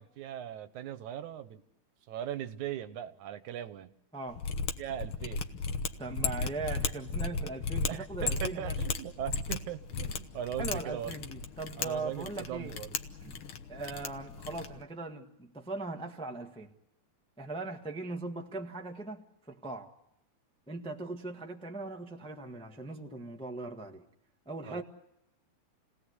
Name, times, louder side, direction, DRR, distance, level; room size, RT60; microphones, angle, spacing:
voice 1, 0.0-1.6 2.1-3.9 4.8-5.5 7.9-11.2 11.8-13.0 24.7-24.8, right 11 dB, 90° right, 2.5 m, -39 dB
Mechanisms, 4.3-14.8, left 5 dB, 55° left, 1.7 m, -35 dB
voice 2, 6.0-8.8 10.6-12.8 13.2-16.7 17.4-19.2 19.5-19.9 20.7-24.0 24.4-24.8, right 3 dB, 5° left, 0.8 m, -39 dB
29.0 x 18.0 x 8.1 m
omnidirectional pair, 3.3 m